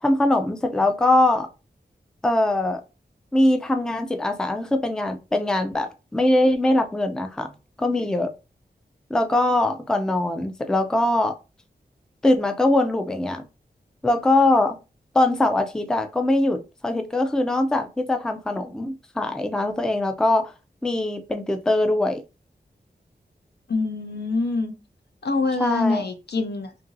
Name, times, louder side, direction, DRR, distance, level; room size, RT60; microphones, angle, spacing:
voice 1, 0.0-1.5 2.2-2.8 3.3-7.5 7.8-8.3 9.1-11.3 12.2-13.4 14.0-14.8 15.1-20.5 20.8-22.2 25.6-26.0, left 1 dB, 5° left, 0.3 m, -22 dB
voice 2, 23.7-24.7 25.2-26.7, left 3 dB, 70° left, 0.5 m, -25 dB
2.9 x 2.6 x 2.5 m
wide cardioid pair, 100°, 18 cm